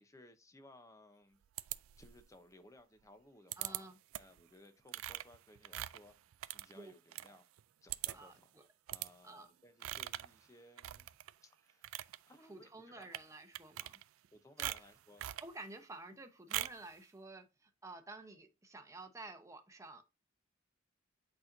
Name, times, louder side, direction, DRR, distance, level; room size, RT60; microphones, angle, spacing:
voice 1, 0.0-1.4 2.0-6.1 6.5-7.5 7.8-11.1 11.4-11.9 12.3-13.2 14.3-15.3, left 1 dB, 15° left, 0.8 m, -61 dB
sound 1, 1.6-2.3 3.5-3.8 4.1-4.4 4.9-7.3 7.6-7.7 7.9-8.4 8.9-9.1 9.8-10.3 10.8-11.3 11.7-12.2 13.0-13.3 13.5-14.3 14.6-15.5 16.5-16.9, right 15 dB, 85° right, 0.3 m, -42 dB
voice 2, 3.6-3.9 6.7-6.9 7.3-7.4 8.1-8.3 9.2-9.5 12.5-14.0 14.6-14.7 15.4-20.0, right 2 dB, 15° right, 0.9 m, -51 dB
8.3 x 4.4 x 2.6 m
head